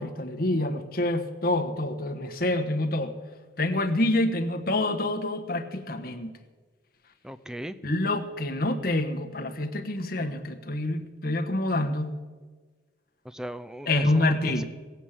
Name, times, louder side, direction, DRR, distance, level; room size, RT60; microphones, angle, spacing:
voice 1, 0.0-3.2 3.6-6.3 7.8-12.2 13.9-14.6, left 1 dB, 50° left, 5 dB, 1.3 m, -27 dB
voice 2, 7.2-7.8 13.3-14.6, equal, 5° right, 11 dB, 0.5 m, -37 dB
17.5 x 8.3 x 7.3 m, 1.4 s
head